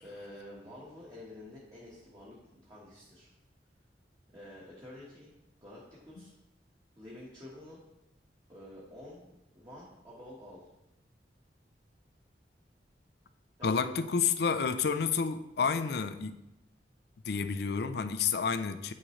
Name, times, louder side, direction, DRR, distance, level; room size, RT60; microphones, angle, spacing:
voice 1, 0.0-2.4 2.6-3.3 4.3-5.3 5.6-6.4 7.0-7.8 8.5-10.6 13.6-14.0, left 1 dB, 25° right, -6 dB, 1.3 m, -49 dB
voice 2, 13.6-16.4 17.2-18.9, left 5 dB, 60° left, 11 dB, 0.5 m, -30 dB
8.8 x 6.1 x 3.2 m, 0.91 s
head